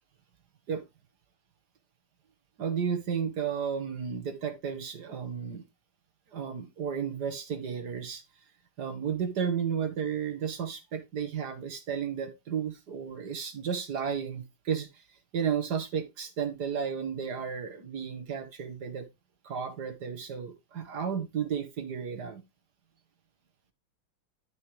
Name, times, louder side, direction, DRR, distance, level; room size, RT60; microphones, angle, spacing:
voice 1, 2.6-5.6 6.3-8.2 8.8-15.0 15.3-19.1 19.4-22.4, right 7 dB, 50° right, 2.3 m, -33 dB
12.0 x 6.8 x 3.4 m
omnidirectional pair, 2.3 m